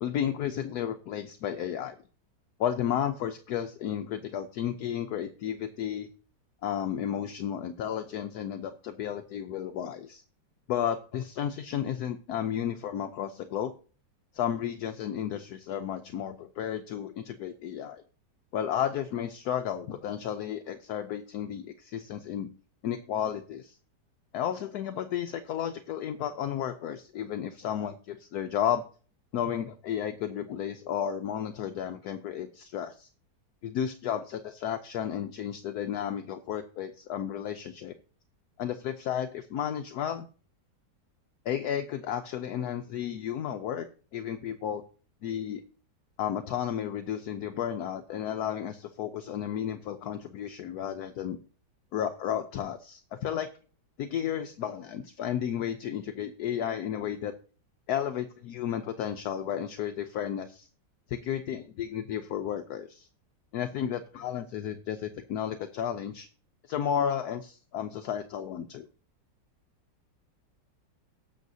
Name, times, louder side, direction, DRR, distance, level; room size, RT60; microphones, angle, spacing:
voice 1, 0.0-2.0 2.6-6.1 6.6-10.2 10.7-13.7 14.3-18.0 18.5-22.5 22.8-23.7 24.3-28.8 29.3-33.1 33.6-38.0 38.6-40.3 41.5-43.9 44.1-44.8 45.2-45.6 46.2-51.4 51.9-53.5 54.0-57.3 57.9-60.7 61.1-63.1 63.5-66.3 66.7-68.9, left 9 dB, 70° left, 6 dB, 1.1 m, -33 dB
18.5 x 6.5 x 2.7 m, 0.38 s
omnidirectional pair, 1.9 m